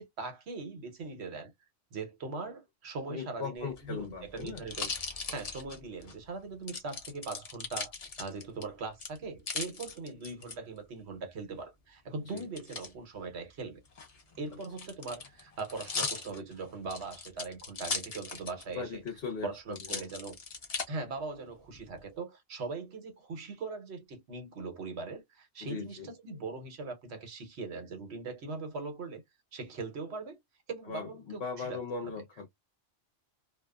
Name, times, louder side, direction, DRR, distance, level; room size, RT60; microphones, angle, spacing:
voice 1, 0.0-1.5 1.9-4.9 5.3-7.9 8.2-13.8 14.4-19.0 19.4-20.3 20.9-29.2 29.5-30.4 30.7-32.1, right 4 dB, 65° right, 1.1 m, -40 dB
voice 2, 3.1-4.6 12.3-12.4 18.7-20.1 25.6-26.1 30.9-32.5, left 5 dB, 65° left, 1.0 m, -39 dB
sound 1, 3.6-6.1 6.7-8.6 9.0-10.5 12.4-12.9 13.8-18.7 19.1-19.2 19.7-20.9 21.5-22.0, left 4 dB, 40° left, 0.7 m, -38 dB
2.5 x 2.4 x 2.3 m
omnidirectional pair, 1.2 m